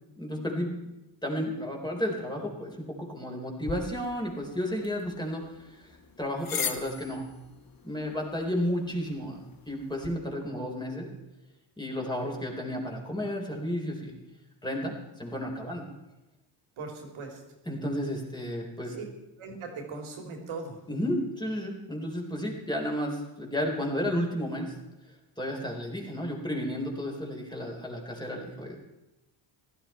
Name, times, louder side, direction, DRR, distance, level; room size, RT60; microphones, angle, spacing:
voice 1, 0.2-0.8 1.2-7.3 7.8-9.4 9.7-11.1 11.8-14.1 14.6-15.9 17.7-19.0 20.9-24.7 25.4-28.8, equal, 10° left, 0 dB, 3.9 m, -32 dB
sound 1, 3.6-10.1, left 6 dB, 40° left, 1.6 m, -41 dB
voice 2, 16.8-17.4 18.9-19.0 19.4-20.8, right 4 dB, 70° right, 2 dB, 3.4 m, -39 dB
15.5 x 12.5 x 4.5 m, 0.95 s
cardioid pair, 90°, 50 cm